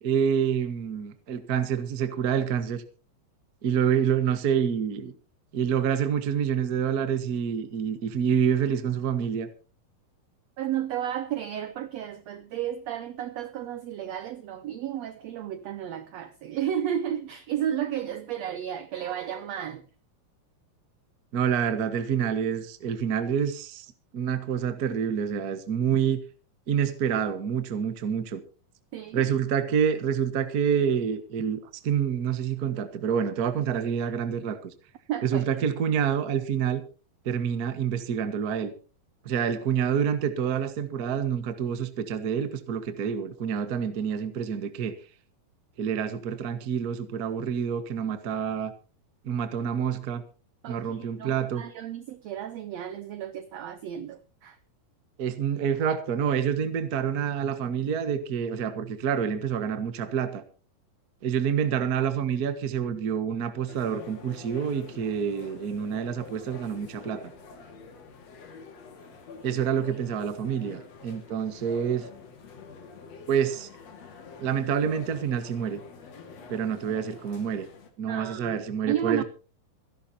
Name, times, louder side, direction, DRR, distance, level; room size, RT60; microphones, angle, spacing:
voice 1, 0.0-2.8 3.6-5.1 5.5-9.5 21.3-23.8 24.1-26.2 26.7-28.4 29.1-34.7 35.2-36.8 37.2-38.7 39.2-44.9 45.8-48.7 49.2-50.2 50.7-51.6 55.2-60.4 61.2-67.2 69.4-72.1 73.3-73.7 74.4-75.8 76.5-77.7 78.0-79.2, right 8 dB, 60° right, 0.9 m, -27 dB
voice 2, 10.6-19.9 28.9-29.3 35.1-35.5 50.6-54.6 78.1-79.2, right 10 dB, 85° right, 1.4 m, -33 dB
sound 1, 63.7-77.9, left 5 dB, 50° left, 2.9 m, -46 dB
26.5 x 11.5 x 2.8 m
omnidirectional pair, 4.1 m